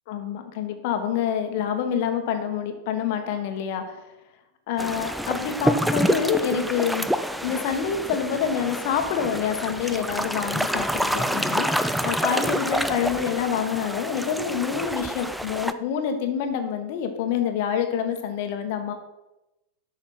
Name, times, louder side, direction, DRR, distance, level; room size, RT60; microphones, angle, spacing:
voice 1, 0.1-4.0 4.7-7.1 7.4-18.9, left 7 dB, 50° left, 7 dB, 1.4 m, -27 dB
sound 1, 4.8-15.7, equal, ahead, 0.5 m, -27 dB
11.5 x 6.9 x 4.5 m, 0.99 s
figure-of-eight pair, 90°, 0 cm